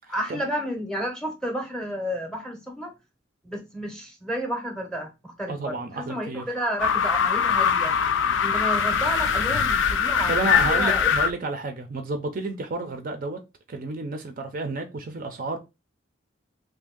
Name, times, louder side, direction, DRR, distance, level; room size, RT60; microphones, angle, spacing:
voice 1, 0.1-2.9 3.4-7.9 8.4-10.3 10.7-11.1, equal, 5° left, 0.7 m, -31 dB
voice 2, 5.5-6.4 10.0-13.4 13.7-15.6, right 3 dB, 45° right, 0.5 m, -31 dB
sound 1, 6.8-11.3, left 7 dB, 70° left, 0.3 m, -22 dB
2.7 x 2.6 x 3.7 m
head